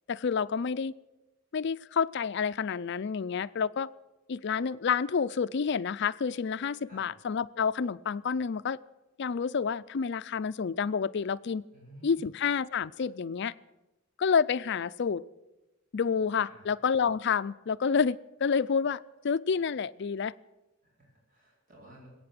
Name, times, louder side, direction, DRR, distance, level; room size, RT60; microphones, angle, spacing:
voice 1, 0.1-0.9 1.5-3.9 4.3-8.8 9.2-11.6 12.0-13.5 14.2-15.2 15.9-20.3, left 6 dB, 60° left, 15 dB, 0.5 m, -29 dB
voice 2, 11.7-12.3 16.4-16.8 20.8-22.1, right 1 dB, 45° right, -4 dB, 4.5 m, -53 dB
21.0 x 8.9 x 7.8 m, 1.0 s
head